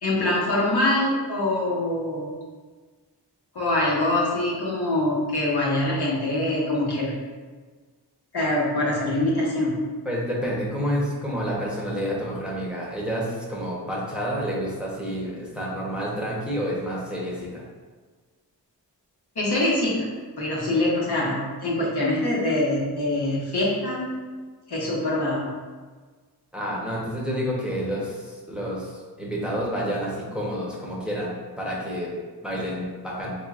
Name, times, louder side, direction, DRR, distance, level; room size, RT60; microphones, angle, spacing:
voice 1, 0.0-2.3 3.5-7.1 8.3-9.8 19.3-20.1 20.4-24.2 24.7-25.5, left 1 dB, 65° left, -5 dB, 1.2 m, -24 dB
voice 2, 10.0-17.6 26.5-32.1 32.4-33.4, equal, ahead, -5 dB, 1.0 m, -29 dB
5.0 x 3.3 x 2.5 m, 1.4 s
wide cardioid pair, 65°, 41 cm